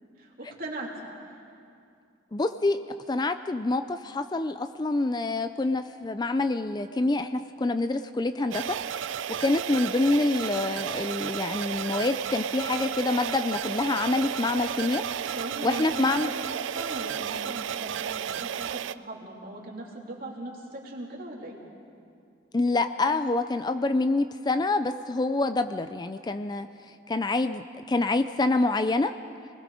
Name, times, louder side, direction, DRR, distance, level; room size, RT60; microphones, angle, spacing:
voice 1, 0.2-1.1 15.2-21.6, right 1 dB, 45° right, -2 dB, 3.2 m, -39 dB
voice 2, 2.3-2.8 3.1-8.8 9.4-15.0 15.6-16.3 22.5-26.7 27.1-29.1, left 2 dB, 20° left, 9 dB, 0.4 m, -26 dB
sound 1, 8.5-18.9, right 8 dB, 75° right, 0.4 m, -33 dB
27.5 x 20.5 x 4.9 m, 2.5 s
head